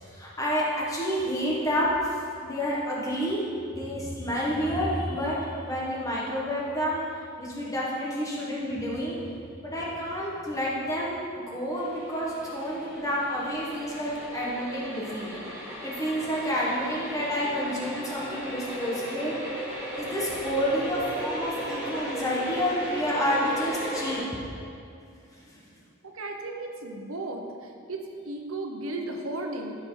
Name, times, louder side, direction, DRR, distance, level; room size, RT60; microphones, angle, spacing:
voice 1, 0.0-2.1 2.4-3.4 3.7-7.0 7.4-9.2 9.6-15.3 15.8-19.3 20.0-24.2 25.5-25.6, equal, 15° left, -5 dB, 1.4 m, -29 dB
sound 1, 11.7-24.2, equal, 10° right, 2.4 m, -36 dB
voice 2, 26.0-29.8, right 2 dB, 85° right, 2 dB, 1.1 m, -35 dB
14.5 x 5.8 x 3.9 m, 2.4 s
head